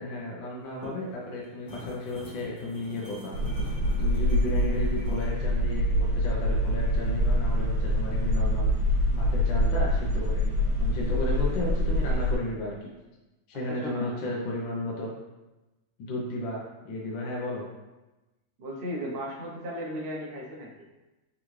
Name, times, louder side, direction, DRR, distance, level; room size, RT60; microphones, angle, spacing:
voice 1, 0.0-3.4 4.0-8.7 9.1-12.9 13.5-15.1 16.0-17.7, left 1 dB, 80° left, -4 dB, 1.5 m, -34 dB
sound 1, 0.6-5.4, left 3 dB, 40° left, 1.7 m, -43 dB
sound 2, 3.3-12.3, equal, 80° right, 1.6 m, -25 dB
voice 2, 13.5-14.3 18.6-20.7, equal, 65° right, -3 dB, 0.5 m, -36 dB
3.8 x 3.6 x 3.0 m, 1.1 s
omnidirectional pair, 2.1 m